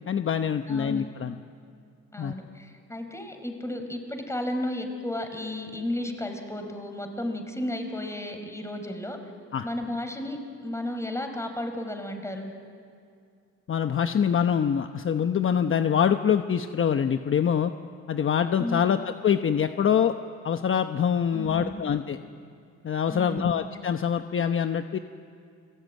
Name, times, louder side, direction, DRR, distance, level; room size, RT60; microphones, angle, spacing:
voice 1, 0.1-1.4 2.2-2.3 9.5-9.7 13.7-17.7 18.1-20.1 20.4-22.2 22.8-25.0, left 8 dB, 45° left, 8 dB, 1.0 m, -25 dB
voice 2, 0.7-1.0 2.1-9.2 9.6-12.5 18.6-18.9 21.3-21.8 23.1-23.5, left 1 dB, 10° left, 5 dB, 4.5 m, -33 dB
29.5 x 21.0 x 9.4 m, 2.4 s
cardioid pair, 90°, 30 cm